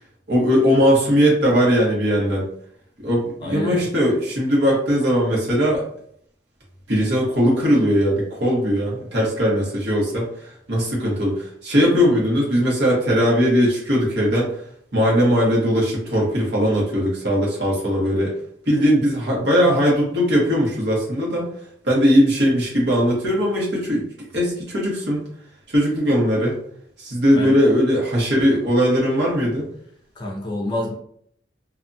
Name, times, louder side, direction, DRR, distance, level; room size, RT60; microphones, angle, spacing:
voice 1, 0.3-2.5 3.0-5.8 6.9-10.3 10.7-14.5 14.9-18.3 18.7-21.5 21.8-24.0 24.3-25.2 25.7-26.6 27.0-29.6, equal, 70° right, -4 dB, 1.2 m, -19 dB
voice 2, 3.4-3.8 27.3-27.5 30.2-30.9, left 1 dB, 25° left, -1 dB, 0.5 m, -27 dB
2.7 x 2.3 x 2.6 m, 0.65 s
head